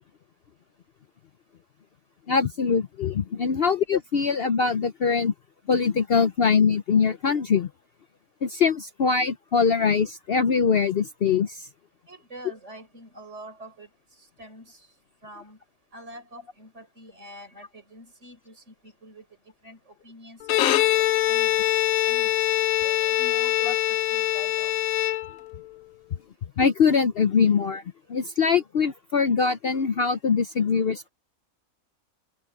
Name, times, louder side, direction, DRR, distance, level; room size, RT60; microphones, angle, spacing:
voice 1, 2.3-5.3 5.7-7.7 8.4-11.7 23.6-23.7 26.6-27.8 28.1-31.1, left 5 dB, 50° left, 0.8 m, -23 dB
voice 2, 12.1-13.9 14.2-14.9 15.2-15.6 15.9-19.3 19.6-20.8 21.3-21.7 22.0-22.5 22.8-25.0, right 1 dB, 55° right, 5.5 m, -46 dB
Bowed string instrument, 20.4-25.7, left 14 dB, 80° left, 1.1 m, -23 dB
omnidirectional pair, 1.5 m